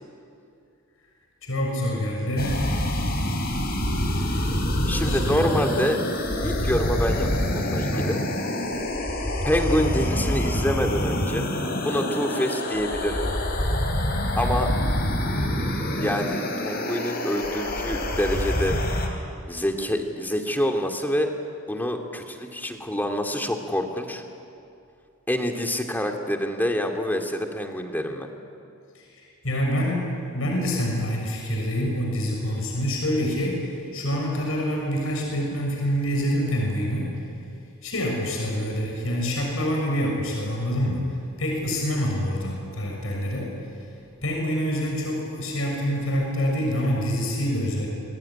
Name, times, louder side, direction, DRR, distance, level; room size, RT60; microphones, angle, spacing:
voice 1, 1.4-2.7 4.0-4.4 5.0-5.5 6.4-6.8 7.9-8.2 28.9-37.2 37.8-43.9 44.2-47.9, equal, 85° left, -1 dB, 6.5 m, -27 dB
sound 1, 2.4-19.1, left 1 dB, 50° left, 4.1 m, -26 dB
voice 2, 4.9-6.0 6.4-8.2 9.4-11.5 11.8-13.3 14.4-14.7 16.0-18.8 19.5-21.3 21.7-24.2 25.3-28.3, equal, 10° left, 3 dB, 2.3 m, -26 dB
27.5 x 21.5 x 10.0 m, 2.5 s
head